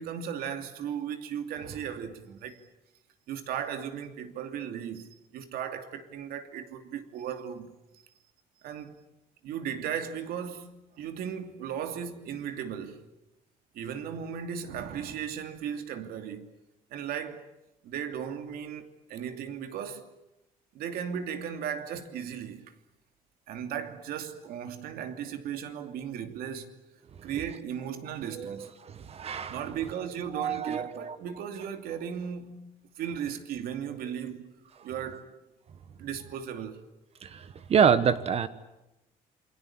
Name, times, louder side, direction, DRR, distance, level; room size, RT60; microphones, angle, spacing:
voice 1, 0.0-2.6 3.3-7.7 8.6-9.0 9.4-13.0 13.7-16.5 16.9-17.4 17.8-20.1 20.7-22.7 23.5-26.8 27.2-28.7 29.5-32.7 33.0-34.5 34.8-35.4 36.0-36.8, right 8 dB, 80° right, 2.8 m, -36 dB
voice 2, 28.3-29.6 30.3-31.2 37.2-38.5, right 7 dB, 40° right, 1.3 m, -27 dB
28.0 x 23.0 x 8.8 m
cardioid pair, 135°, 15 cm